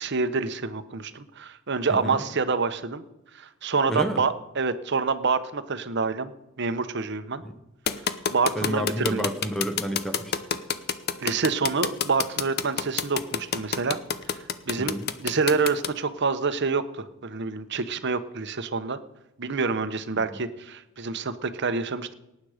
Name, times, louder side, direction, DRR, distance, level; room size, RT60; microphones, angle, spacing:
voice 1, 0.0-3.0 3.3-7.4 8.3-9.2 11.2-14.0 14.3-19.0 19.4-22.1, right 4 dB, 55° right, 12 dB, 0.9 m, -27 dB
voice 2, 3.9-4.2 8.6-10.3 14.9-15.1, equal, ahead, 6 dB, 1.1 m, -29 dB
sound 1, 7.9-15.9, left 7 dB, 50° left, 0.7 m, -27 dB
18.5 x 9.4 x 5.0 m, 0.91 s
head